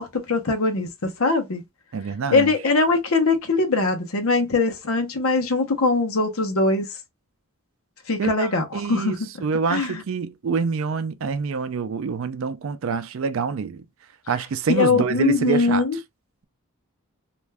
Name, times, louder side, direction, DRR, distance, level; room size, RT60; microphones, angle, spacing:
voice 1, 0.0-1.6 2.3-6.9 8.1-9.3 9.7-10.0 14.8-16.0, left 3 dB, 75° left, 0.8 m, -22 dB
voice 2, 1.9-2.5 8.2-13.9 14.3-15.8, right 5 dB, 65° right, 0.4 m, -26 dB
2.5 x 2.2 x 3.3 m
head